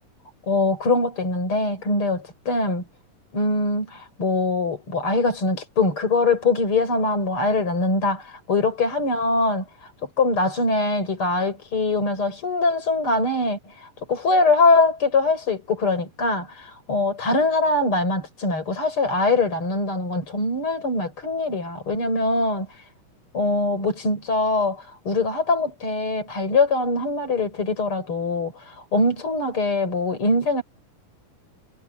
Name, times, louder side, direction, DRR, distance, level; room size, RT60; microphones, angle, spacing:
voice 1, 0.5-2.8 3.3-22.7 23.3-30.6, left 3 dB, 40° left, 7.3 m, -23 dB
omnidirectional pair, 3.8 m